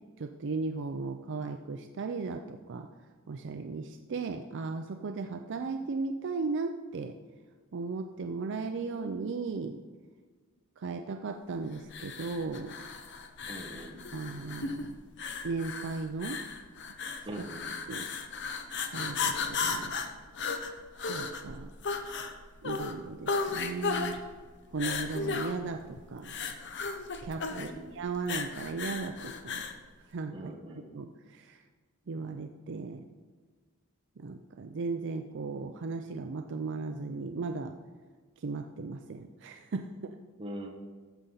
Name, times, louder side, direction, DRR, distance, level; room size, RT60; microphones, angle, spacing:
voice 1, 0.2-2.9 3.3-7.1 7.7-9.8 10.8-12.8 14.1-15.0 15.4-16.4 17.2-17.5 17.9-18.1 18.9-19.9 21.1-21.7 22.6-24.1 24.7-26.3 27.2-29.6 30.1-31.6 32.1-33.0 34.2-37.7 38.4-40.1, right 4 dB, 55° right, 6 dB, 0.5 m, -36 dB
sound 1, 11.9-29.8, left 4 dB, 55° left, 0.8 m, -35 dB
voice 2, 13.5-14.0 17.2-17.7 27.5-27.9 30.3-30.9 40.4-40.7, right 1 dB, 25° right, 1 dB, 1.1 m, -42 dB
14.0 x 5.6 x 3.9 m, 1.4 s
head